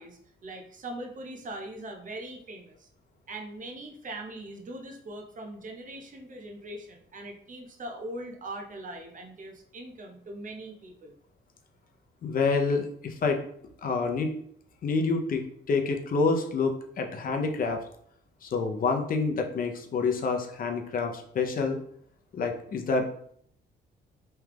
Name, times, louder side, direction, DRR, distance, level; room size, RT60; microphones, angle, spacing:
voice 1, 0.0-2.9 3.3-11.1, right 1 dB, 40° right, 2 dB, 0.7 m, -41 dB
voice 2, 12.2-13.4 13.8-14.4 14.8-17.8 18.4-21.8 22.3-23.1, left 4 dB, 45° left, 3 dB, 0.6 m, -27 dB
3.2 x 2.3 x 3.3 m, 0.64 s
cardioid pair, 90°, 20 cm